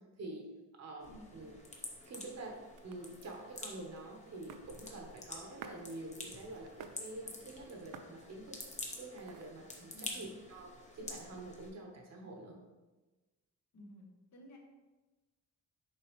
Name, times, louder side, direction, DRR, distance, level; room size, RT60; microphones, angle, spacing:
voice 1, 0.2-0.5 0.8-1.5 2.1-8.6 9.0-12.6, right 2 dB, 50° right, 1 dB, 1.2 m, -47 dB
sound 1, 1.0-11.7, left 2 dB, 20° left, 0.8 m, -49 dB
sound 2, 1.7-9.8, right 7 dB, 75° right, 0.5 m, -57 dB
voice 2, 13.7-14.6, equal, 60° left, 0 dB, 1.2 m, -54 dB
6.8 x 4.7 x 3.1 m, 1.2 s
wide cardioid pair, 175°, 32 cm